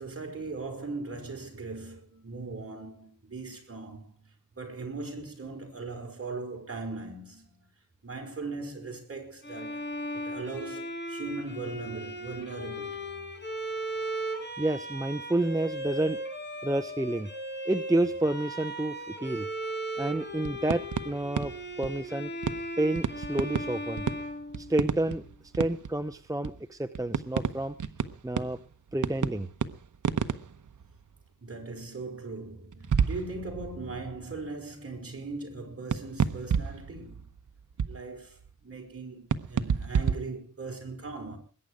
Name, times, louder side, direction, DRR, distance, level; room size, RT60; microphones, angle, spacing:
voice 1, 0.0-4.1 4.6-7.7 8.0-9.8 10.1-13.2 31.4-37.3 37.9-41.4, right 3 dB, 45° right, 5.3 m, -39 dB
Bowed string instrument, 9.4-25.2, right 1 dB, 30° left, 5.7 m, -37 dB
voice 2, 14.6-16.2 16.6-17.3 17.7-19.5 20.0-22.3 22.8-24.0 24.6-25.2 25.5-27.8 28.2-28.6 28.9-29.5, right 1 dB, 10° right, 0.7 m, -29 dB
sound 1, 20.3-22.1 22.4-22.7 23.0-26.1 26.4-26.5 27.0-31.1 32.7-34.2 35.9-38.5 39.3-40.1, right 7 dB, 65° right, 0.9 m, -30 dB
21.5 x 9.9 x 4.9 m
wide cardioid pair, 90°, 33 cm